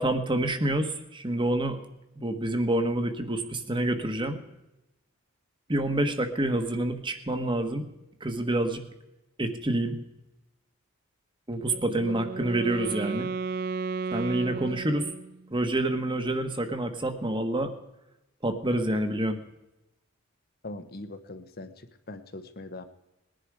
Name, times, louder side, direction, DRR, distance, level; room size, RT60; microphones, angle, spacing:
voice 1, 0.0-1.8 2.2-4.4 5.7-7.9 8.2-8.8 9.4-10.0 11.5-13.3 14.1-15.1 15.5-17.7 18.4-19.4, right 1 dB, 25° right, 7 dB, 1.3 m, -27 dB
Wind instrument woodwind instrument, 11.6-15.5, right 4 dB, 45° right, 0.5 m, -34 dB
voice 2, 20.6-22.8, left 2 dB, 45° left, 9 dB, 1.1 m, -41 dB
20.0 x 10.5 x 4.8 m, 0.95 s
head